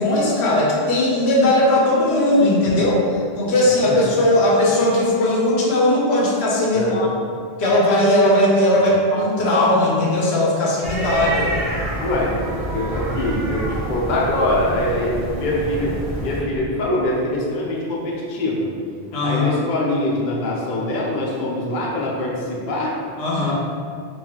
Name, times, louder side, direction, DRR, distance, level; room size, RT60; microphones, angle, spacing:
voice 1, 0.0-3.0 3.4-7.1 7.6-11.5 19.1-19.6 23.2-23.5, left 1 dB, 75° left, -4 dB, 1.0 m, -18 dB
sound 1, 10.8-16.4, right 1 dB, 60° right, 1.3 m, -27 dB
voice 2, 12.0-12.4 12.7-18.7 19.2-22.9 23.5-23.6, left 1 dB, 50° left, -4 dB, 0.7 m, -23 dB
4.6 x 2.5 x 2.8 m, 2.3 s
omnidirectional pair, 1.1 m